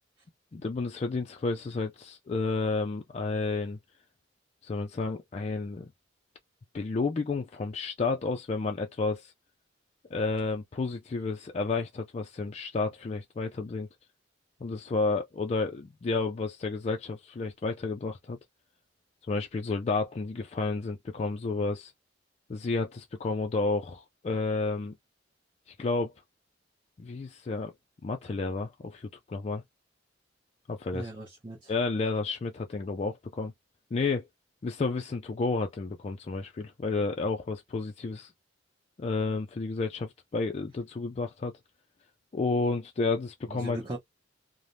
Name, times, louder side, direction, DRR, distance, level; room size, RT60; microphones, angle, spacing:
voice 1, 0.5-3.8 4.6-5.9 6.7-9.3 10.1-13.9 14.6-18.4 19.2-21.9 22.5-24.9 25.7-26.1 27.0-27.7 28.0-29.6 30.7-31.1 31.7-33.5 33.9-34.3 34.6-38.3 39.0-41.5 42.3-43.8, left 3 dB, 35° left, 0.3 m, -31 dB
voice 2, 30.9-31.7 43.5-44.0, right 1 dB, 25° right, 0.9 m, -39 dB
3.3 x 2.0 x 2.6 m
head